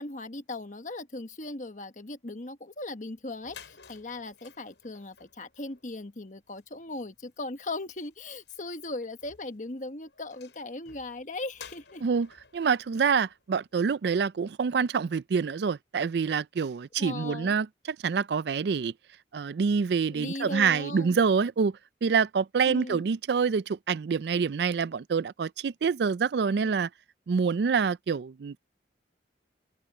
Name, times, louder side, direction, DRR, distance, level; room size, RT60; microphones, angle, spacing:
voice 1, 0.0-12.0 17.0-17.5 20.1-21.1 22.6-23.0, left 2 dB, 45° left, 1.3 m, -38 dB
sound 1, 3.0-3.1 3.3-14.1, left 6 dB, 90° left, 6.6 m, -55 dB
voice 2, 12.5-18.9 19.3-21.7 22.0-26.9 27.3-28.6, right 5 dB, 70° right, 0.4 m, -26 dB
head